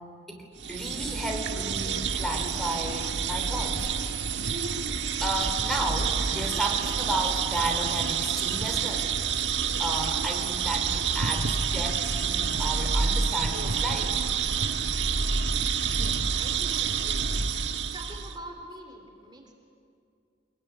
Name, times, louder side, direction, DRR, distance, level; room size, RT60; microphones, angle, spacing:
voice 1, 0.3-3.9 4.4-4.8 5.2-9.1 9.8-14.2, right 1 dB, ahead, 2 dB, 3.4 m, -33 dB
sound 1, 0.6-18.4, right 6 dB, 80° right, 1.4 m, -28 dB
voice 2, 15.9-17.4 17.9-19.5, right 1 dB, 25° right, 3 dB, 3.3 m, -45 dB
26.0 x 21.5 x 9.5 m, 2.4 s
head